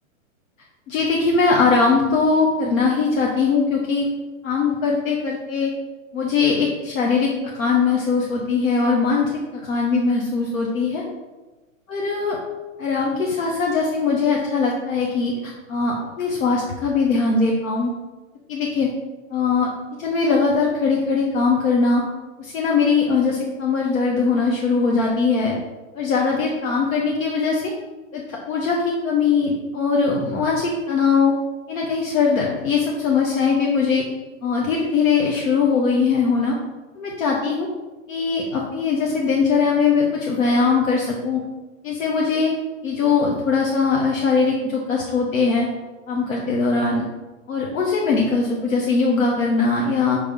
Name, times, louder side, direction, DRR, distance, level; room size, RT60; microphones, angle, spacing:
voice 1, 0.9-4.0 4.4-5.7 6.1-9.3 9.6-11.0 11.9-12.4 12.8-17.9 18.5-18.9 19.3-19.7 20.0-22.0 22.4-25.5 25.9-27.7 28.1-31.3 31.7-34.0 34.4-36.6 37.0-37.7 38.1-41.4 41.8-42.5 42.8-45.7 46.1-47.1 47.5-50.2, left 4 dB, 80° left, -1 dB, 1.1 m, -21 dB
5.5 x 3.3 x 5.3 m, 1.2 s
hypercardioid pair, 150°, 40 cm